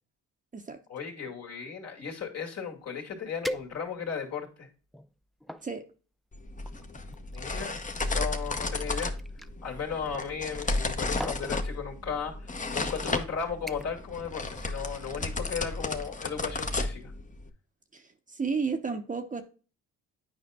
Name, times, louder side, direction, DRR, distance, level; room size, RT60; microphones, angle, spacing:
voice 1, 0.9-4.7 7.3-7.8 8.1-9.1 9.6-17.1, left 6 dB, 55° left, 2.3 m, -36 dB
sound 1, 2.8-2.9 3.4-4.2 4.8-5.7 6.6-9.5 10.6-10.9 11.2-11.5 12.4-12.5 13.0-13.2 13.7-14.1 14.4-14.7 15.1-15.2, equal, ahead, 0.4 m, -41 dB
sound 2, 6.3-17.5, left 2 dB, 25° left, 0.9 m, -33 dB
voice 2, 17.9-19.4, right 5 dB, 25° right, 0.8 m, -32 dB
9.4 x 5.1 x 2.2 m
cardioid pair, 90°, 30 cm